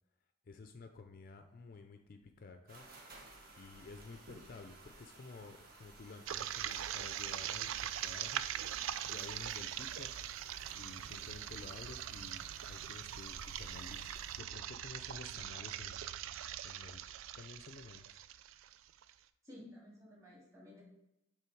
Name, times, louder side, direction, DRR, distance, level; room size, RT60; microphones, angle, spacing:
voice 1, 0.5-2.9 3.6-10.1 10.7-16.1 16.6-18.2, left 3 dB, 45° left, 6 dB, 0.4 m, -52 dB
sound 1, 2.7-14.4, right 2 dB, 50° right, 1.2 m, -57 dB
sound 2, 6.3-19.1, right 11 dB, 85° right, 0.3 m, -42 dB
voice 2, 19.4-20.8, left 1 dB, 15° right, -4 dB, 2.0 m, -54 dB
6.9 x 3.2 x 4.5 m, 0.91 s
head